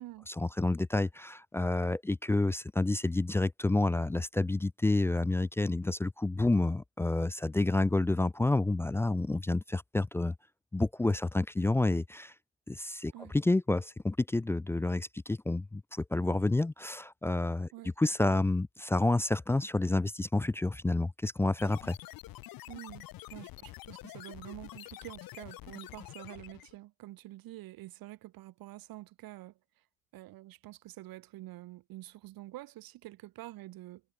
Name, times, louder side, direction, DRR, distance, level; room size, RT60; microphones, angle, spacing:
voice 1, 0.3-10.3 10.7-12.3 12.7-17.7 18.0-22.0, left 2 dB, 5° left, 0.3 m, -29 dB
sound 1, 21.6-26.8, left 16 dB, 70° left, 4.3 m, -47 dB
voice 2, 22.7-23.0 23.3-29.6 30.1-34.0, right 17 dB, 70° right, 3.7 m, -47 dB
cardioid pair, 165°, 37 cm